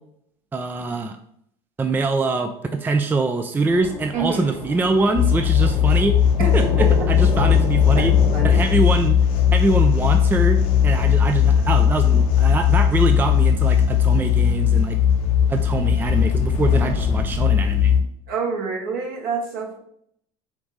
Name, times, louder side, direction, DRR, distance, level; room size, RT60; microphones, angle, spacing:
voice 1, 0.5-1.2 1.8-8.1 8.4-9.2 9.5-15.0 15.5-18.0, right 3 dB, 10° right, 6 dB, 0.4 m, -24 dB
Thunder / Rain, 3.7-16.5, left 3 dB, 85° left, 1.5 m, -33 dB
voice 2, 4.1-4.5 6.4-7.1 7.9-8.6 18.3-19.8, right 5 dB, 60° right, -1 dB, 1.4 m, -27 dB
sound 1, 5.1-18.0, left 8 dB, 60° left, 0.8 m, -18 dB
5.1 x 2.5 x 3.3 m, 0.69 s
hypercardioid pair, 85°, 16 cm